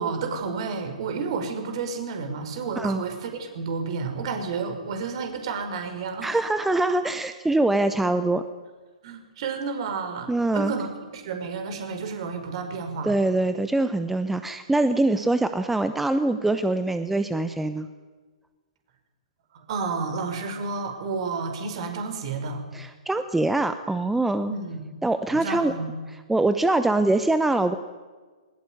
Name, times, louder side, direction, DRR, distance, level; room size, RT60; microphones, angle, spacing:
voice 1, 0.0-6.3 9.0-10.9 11.1-13.1 19.5-22.6 24.5-24.8 25.3-26.0, right 4 dB, 50° right, 6 dB, 5.4 m, -31 dB
voice 2, 6.2-8.4 10.3-10.7 13.0-17.9 22.7-24.5 25.0-25.7 26.3-27.8, right 2 dB, 5° right, 10 dB, 0.9 m, -23 dB
22.0 x 20.0 x 9.5 m, 1.4 s
figure-of-eight pair, 120°, 4 cm